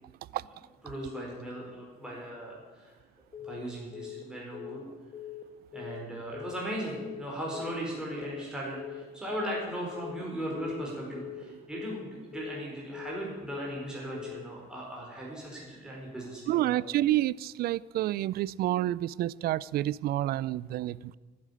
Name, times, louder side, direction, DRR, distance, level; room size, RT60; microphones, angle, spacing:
voice 1, 0.8-2.9 3.4-4.8 5.7-16.8, right 1 dB, 5° right, 4.4 m, -38 dB
Telephone, 3.3-3.6 3.9-4.2 4.5-4.8 5.1-5.4 5.7-6.0 6.3-6.6 6.9-7.2 7.5-7.8 8.1-8.4 8.7-9.0 9.3-9.6 9.9-10.2 10.5-10.8 11.1-11.4 11.7-12.0 12.3-12.6 12.9-13.2 13.5-13.8 14.1-14.4, left 12 dB, 30° left, 1.8 m, -42 dB
voice 2, 16.5-21.2, right 14 dB, 65° right, 0.4 m, -29 dB
11.5 x 8.6 x 9.9 m
cardioid pair, 110°, 17 cm